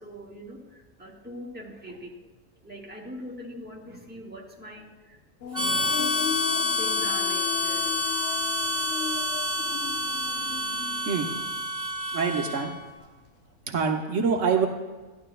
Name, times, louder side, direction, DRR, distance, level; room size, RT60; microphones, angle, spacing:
voice 1, 0.0-2.3 2.6-5.2 5.5-6.0 6.8-7.9, equal, 5° right, -3 dB, 1.5 m, -42 dB
sound 1, 5.4-12.3 12.5-13.3, left 8 dB, 70° left, 1.1 m, -37 dB
Harmonica, 5.5-12.8, left 1 dB, 25° right, 2.1 m, -28 dB
voice 2, 11.1-11.5 12.1-12.7 13.0-13.1 13.7-14.7, right 5 dB, 70° right, 3 dB, 1.2 m, -25 dB
13.5 x 11.0 x 2.3 m, 1.3 s
omnidirectional pair, 1.4 m